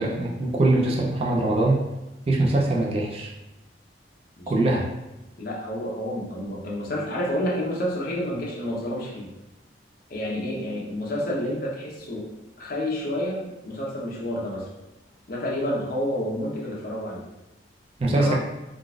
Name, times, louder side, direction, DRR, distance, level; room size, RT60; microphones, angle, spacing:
voice 1, 0.0-1.8 2.3-3.3 4.5-4.9 18.0-18.3, right 2 dB, 35° right, -2 dB, 0.4 m, -22 dB
voice 2, 5.4-9.3 10.1-12.3 12.6-14.7 15.3-17.2 18.1-18.3, left 1 dB, 55° left, -4 dB, 0.8 m, -29 dB
3.8 x 2.4 x 2.3 m, 1.0 s
head